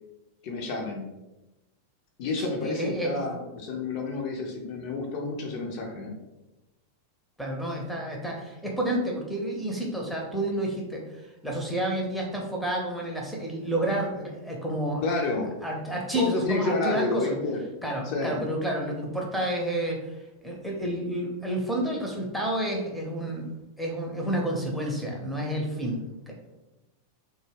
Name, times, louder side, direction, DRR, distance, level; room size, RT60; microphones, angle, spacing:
voice 1, 0.4-1.0 2.2-6.1 15.0-15.5 16.1-17.6 18.0-18.4, left 3 dB, 45° left, 0 dB, 0.4 m, -29 dB
voice 2, 2.6-3.2 7.4-15.1 15.6-17.4 17.8-20.1 20.4-23.5 23.8-26.0 26.3-26.4, right 1 dB, ahead, -2 dB, 0.5 m, -30 dB
2.1 x 2.1 x 3.2 m, 1.0 s
figure-of-eight pair, 90°, 0 cm